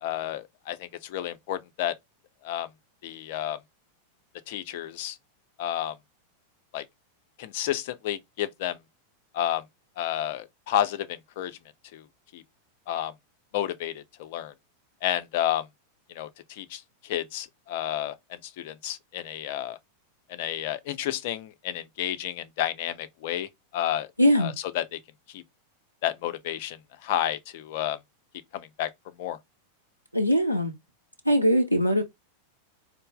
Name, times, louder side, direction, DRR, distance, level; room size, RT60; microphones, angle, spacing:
voice 1, 0.0-1.9 2.4-2.7 3.0-3.6 4.5-5.2 5.6-5.9 6.7-6.8 7.4-8.8 9.3-9.6 10.0-11.6 11.9-12.0 12.3-12.4 12.9-13.1 13.5-14.5 15.0-15.7 16.1-19.8 20.3-24.1 24.4-25.0 25.3-25.4 26.0-28.0 28.5-28.9 29.2-29.4, left 12 dB, 50° left, 0.5 m, -31 dB
voice 2, 24.2-24.5 30.1-30.7 31.3-32.0, equal, 90° right, 0.7 m, -21 dB
3.9 x 2.0 x 3.8 m
figure-of-eight pair, 90°, 0 cm